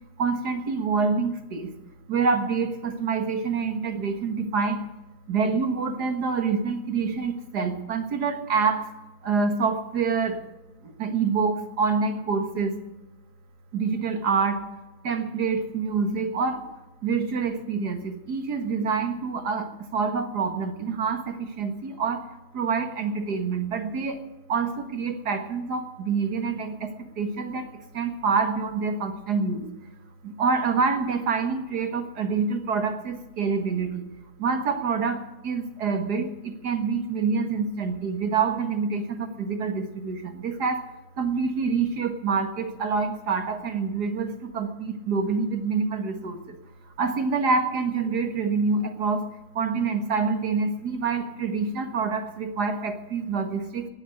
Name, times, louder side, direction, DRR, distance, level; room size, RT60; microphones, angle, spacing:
voice 1, 0.2-1.7 2.1-4.8 5.3-8.9 9.2-10.4 10.8-12.7 13.7-14.7 15.0-16.6 17.0-24.2 24.5-29.7 30.2-34.1 34.4-40.8 41.2-46.6 47.0-49.2 49.6-53.9, right 5 dB, 90° right, 7 dB, 2.2 m, -26 dB
19.0 x 7.4 x 9.2 m, 1.1 s
omnidirectional pair, 1.7 m